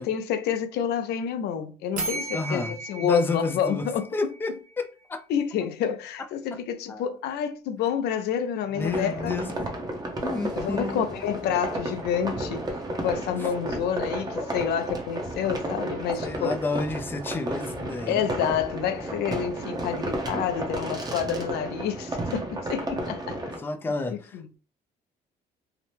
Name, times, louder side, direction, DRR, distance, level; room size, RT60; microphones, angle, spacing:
voice 1, 0.0-4.1 5.3-9.3 10.6-12.6 13.0-16.6 18.1-23.4 24.1-24.4, left 8 dB, 75° left, 0.4 m, -28 dB
sound 1, 2.0-4.7, right 3 dB, 50° right, 0.9 m, -35 dB
voice 2, 2.3-3.9 4.1-5.2 6.9-7.1 8.7-9.5 10.2-11.1 13.4-13.5 14.4-14.5 16.2-18.3 23.6-24.6, left 3 dB, 10° left, 0.4 m, -31 dB
sound 2, 8.8-23.6, right 1 dB, 25° right, 0.7 m, -32 dB
2.8 x 2.0 x 3.2 m
cardioid pair, 110°, 17 cm